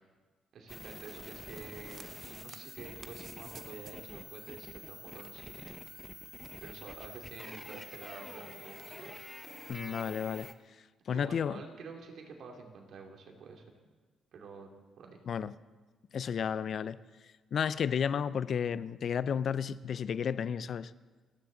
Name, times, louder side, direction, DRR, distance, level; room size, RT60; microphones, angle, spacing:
voice 1, 0.5-5.7 6.6-9.3 11.1-13.6 14.3-15.2, right 4 dB, 65° right, 2.6 m, -49 dB
sound 1, 0.7-10.5, left 1 dB, 10° left, 0.9 m, -47 dB
sound 2, 1.7-4.2 4.4-4.5 4.7-4.8 5.2-7.0 7.3-7.4 7.6-8.1 8.5-9.1, right 5 dB, 45° right, 0.9 m, -55 dB
voice 2, 9.7-10.5 11.1-11.6 15.3-15.5 16.1-17.0 17.5-20.9, left 7 dB, 55° left, 0.5 m, -32 dB
28.5 x 10.0 x 3.9 m
cardioid pair, 90°, 0 cm